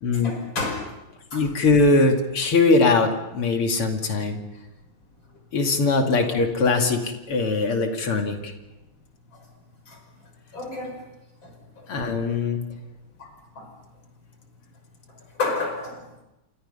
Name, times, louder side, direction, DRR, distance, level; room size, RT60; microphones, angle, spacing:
voice 1, 0.2-0.8 1.3-1.5 6.2-6.3 9.9-10.0 10.5-11.0 11.4-11.5 11.8-11.9 13.2-13.3 13.6-13.7 15.4-15.9, left 3 dB, 60° left, 3 dB, 6.3 m, -30 dB
voice 2, 1.3-4.4 5.5-8.5 11.9-12.6, left 3 dB, 80° left, 3 dB, 3.4 m, -21 dB
29.0 x 25.0 x 5.6 m, 0.99 s
omnidirectional pair, 2.4 m